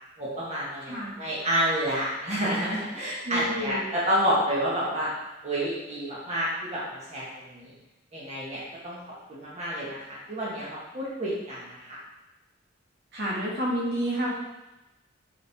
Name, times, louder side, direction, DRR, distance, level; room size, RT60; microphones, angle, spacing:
voice 1, 0.2-5.1 5.4-7.7 8.1-9.0 9.3-12.0, equal, 35° right, -7 dB, 1.7 m, -29 dB
voice 2, 3.3-3.8 13.1-14.3, equal, 60° right, -5 dB, 1.9 m, -29 dB
7.0 x 5.1 x 3.7 m, 0.99 s
head